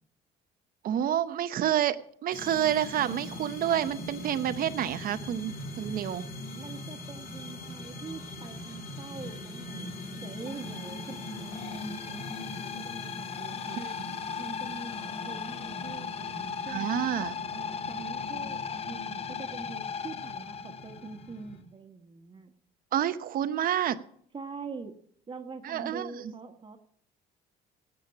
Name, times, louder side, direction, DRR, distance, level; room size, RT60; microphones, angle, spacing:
voice 1, 0.8-6.2 13.8-13.9 16.7-17.4 22.9-24.0 25.6-26.1, right 10 dB, 60° right, 12 dB, 0.9 m, -29 dB
sound 1, 2.3-21.6, left 1 dB, 60° left, 3.1 m, -42 dB
voice 2, 6.5-9.9 10.2-13.8 14.4-16.9 17.5-22.5 24.3-24.9 25.3-26.8, right 4 dB, 30° right, 5 dB, 1.5 m, -44 dB
sound 2, 10.5-21.3, left 7 dB, 35° left, 0.7 m, -38 dB
17.5 x 8.4 x 6.0 m, 0.65 s
cardioid pair, 110°, 17 cm